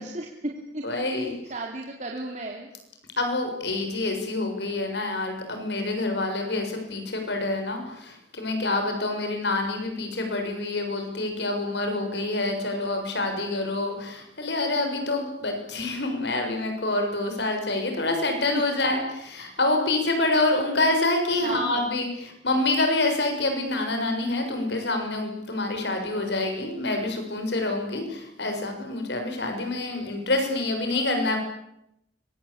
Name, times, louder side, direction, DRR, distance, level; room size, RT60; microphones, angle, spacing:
voice 1, 0.0-1.0 1.5-2.7 8.8-9.2 18.7-18.8 21.4-21.9, right 2 dB, 40° right, 0 dB, 3.4 m, -35 dB
voice 2, 0.8-1.4 3.2-22.1 22.4-31.4, left 2 dB, 70° left, 4 dB, 6.8 m, -27 dB
26.0 x 24.0 x 8.7 m, 0.81 s
head